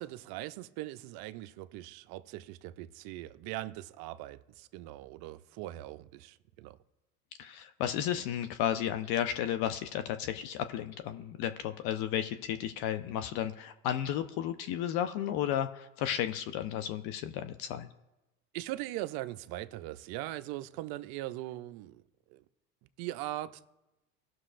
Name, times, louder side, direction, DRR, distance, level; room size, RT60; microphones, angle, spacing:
voice 1, 0.0-6.8 18.5-22.0 22.3-22.4 23.0-23.7, right 16 dB, 55° right, 0.7 m, -40 dB
voice 2, 7.4-17.9, left 10 dB, 55° left, 0.7 m, -33 dB
18.0 x 6.2 x 2.5 m
hypercardioid pair, 80°, 45 cm